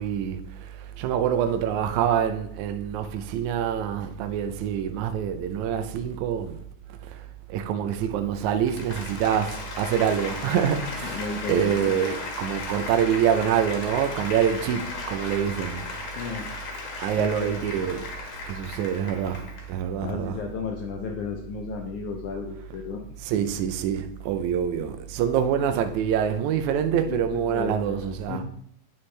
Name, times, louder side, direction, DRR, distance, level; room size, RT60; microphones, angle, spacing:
voice 1, 0.0-6.6 7.0-7.2 7.5-15.9 17.0-18.1 18.5-20.3 23.2-28.4, right 8 dB, 85° right, 1.7 m, -26 dB
Applause, 8.3-19.8, left 3 dB, 60° left, 2.2 m, -36 dB
voice 2, 11.0-11.9 16.2-16.5 17.1-17.5 20.0-23.0 27.0-28.4, left 5 dB, 75° left, 1.8 m, -34 dB
9.0 x 7.0 x 3.2 m
omnidirectional pair, 4.2 m